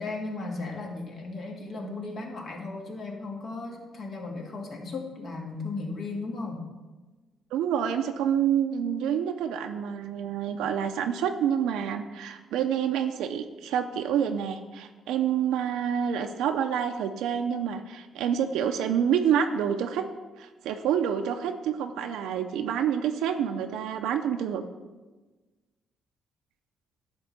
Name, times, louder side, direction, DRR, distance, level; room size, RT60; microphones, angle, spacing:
voice 1, 0.0-6.6, left 3 dB, 55° left, 0 dB, 2.0 m, -36 dB
voice 2, 7.5-20.0 20.4-24.6, right 8 dB, 90° right, 5 dB, 0.5 m, -28 dB
10.5 x 3.7 x 6.7 m, 1.2 s
cardioid pair, 90°, 0 cm